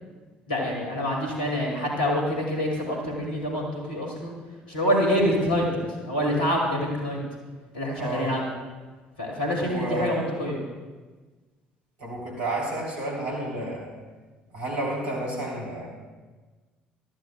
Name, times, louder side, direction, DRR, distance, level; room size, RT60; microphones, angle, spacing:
voice 1, 0.5-4.4 4.7-7.2 7.7-8.4 9.2-10.6, equal, 80° left, -1 dB, 2.2 m, -26 dB
voice 2, 8.0-8.5 9.6-10.3 12.0-13.9 14.5-15.9, right 1 dB, 70° right, -2 dB, 3.2 m, -31 dB
17.5 x 12.5 x 2.3 m, 1.3 s
figure-of-eight pair, 50°, 5 cm